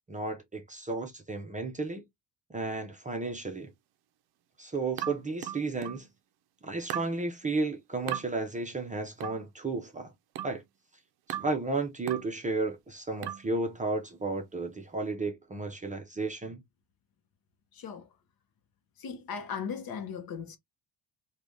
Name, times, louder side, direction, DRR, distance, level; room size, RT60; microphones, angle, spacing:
voice 1, 0.1-2.0 2.5-3.7 4.6-6.1 6.6-10.1 10.4-10.6 11.4-16.6, right 3 dB, 15° right, 0.5 m, -33 dB
sound 1, 5.0-6.1 6.9-7.2 8.1-8.3 9.2-9.5 10.4-10.6 11.3-11.6 12.1-12.3 13.2-13.5, right 12 dB, 60° right, 0.5 m, -37 dB
voice 2, 17.7-18.1 19.0-20.6, left 6 dB, 50° left, 0.8 m, -37 dB
3.2 x 2.3 x 2.5 m
cardioid pair, 140°, 45 cm